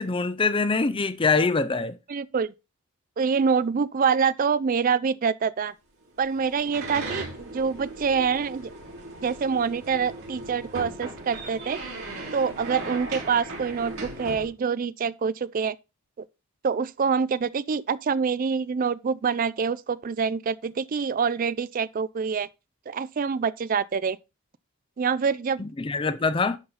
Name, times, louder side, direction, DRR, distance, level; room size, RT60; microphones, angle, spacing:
voice 1, 0.0-2.0 25.6-26.6, left 4 dB, 25° left, 0.4 m, -24 dB
voice 2, 2.1-2.5 3.2-5.7 6.2-8.7 9.2-11.8 12.3-15.8 16.6-22.5 22.9-24.2 25.0-25.6, right 6 dB, 40° right, 0.3 m, -26 dB
sound 1, 6.2-14.5, right 2 dB, 75° right, 4.2 m, -38 dB
11.0 x 4.0 x 4.0 m
head